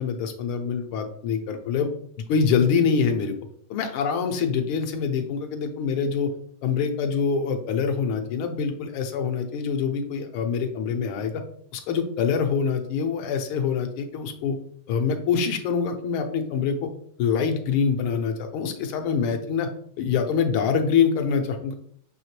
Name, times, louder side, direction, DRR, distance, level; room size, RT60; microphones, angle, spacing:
voice 1, 0.0-1.9 2.3-3.3 3.7-6.3 6.6-11.4 11.7-14.6 14.9-16.9 17.2-19.7 20.0-21.7, left 6 dB, 85° left, 6 dB, 1.5 m, -25 dB
6.2 x 2.8 x 3.0 m, 0.62 s
omnidirectional pair, 2.3 m